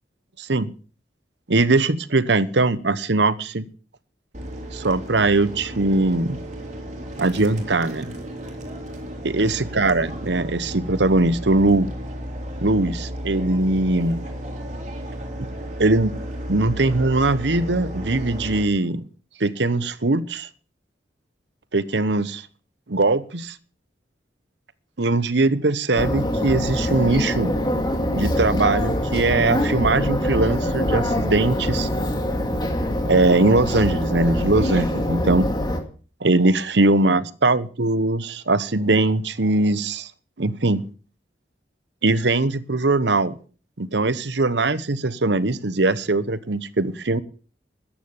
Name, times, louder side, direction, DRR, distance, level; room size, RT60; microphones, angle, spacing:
voice 1, 0.4-0.7 1.5-3.6 4.7-6.4 7.2-8.1 9.2-11.9 12.6-14.2 15.8-16.1 16.5-19.0 19.4-20.5 21.7-22.5 22.9-23.6 25.0-27.5 28.1-31.9 33.0-35.5 36.2-40.1 40.4-40.8 42.0-43.3 43.8-47.2, right 2 dB, 70° right, 16 dB, 1.0 m, -21 dB
sound 1, 4.3-18.6, equal, 40° right, 3.7 m, -34 dB
sound 2, 25.9-35.8, left 1 dB, 25° left, 2.4 m, -24 dB
14.0 x 10.0 x 7.2 m, 0.39 s
head